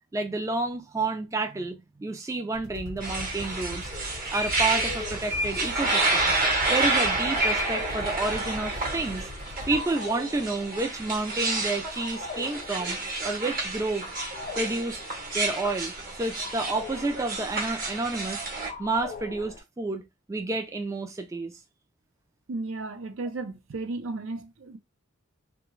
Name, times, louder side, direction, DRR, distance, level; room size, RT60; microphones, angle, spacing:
voice 1, 0.1-3.9 4.3-6.3 6.7-9.3 9.7-13.0 13.2-14.1 14.6-15.0 15.3-15.9 16.2-18.4 18.8-21.5, right 3 dB, 15° right, 0.3 m, -30 dB
sound 1, 2.5-9.8, left 2 dB, 85° left, 0.6 m, -41 dB
sound 2, 3.0-18.7, right 2 dB, 45° right, 0.9 m, -29 dB
sound 3, 3.9-19.6, left 3 dB, 40° left, 0.5 m, -43 dB
voice 2, 22.5-24.8, right 3 dB, 75° right, 0.5 m, -34 dB
2.3 x 2.2 x 3.0 m
head